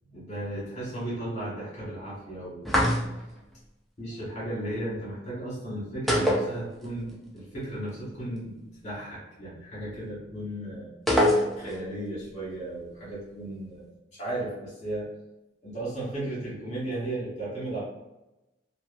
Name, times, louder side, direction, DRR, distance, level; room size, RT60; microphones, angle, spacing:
voice 1, 0.1-2.9 4.0-10.9 11.6-15.1 15.6-17.8, right 1 dB, 40° left, -8 dB, 1.4 m, -35 dB
sound 1, 2.6-3.4 6.1-7.1 7.4-7.5 11.1-11.9, equal, ahead, 0.4 m, -24 dB
2.8 x 2.2 x 2.5 m, 0.98 s
head